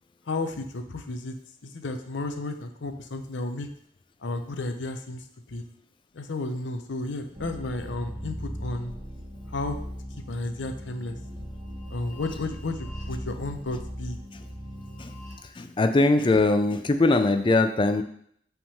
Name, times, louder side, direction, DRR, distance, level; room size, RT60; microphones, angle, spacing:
voice 1, 0.3-1.4 1.6-3.7 4.2-5.2 5.5-5.6 6.1-8.9 9.5-9.8 10.3-11.2 11.9-14.2, left 2 dB, 80° left, 6 dB, 0.7 m, -32 dB
sound 1, 7.3-15.4, equal, 25° right, 1.3 m, -38 dB
voice 2, 15.4-18.0, left 2 dB, 25° left, 8 dB, 0.4 m, -22 dB
5.7 x 3.6 x 5.6 m, 0.66 s
head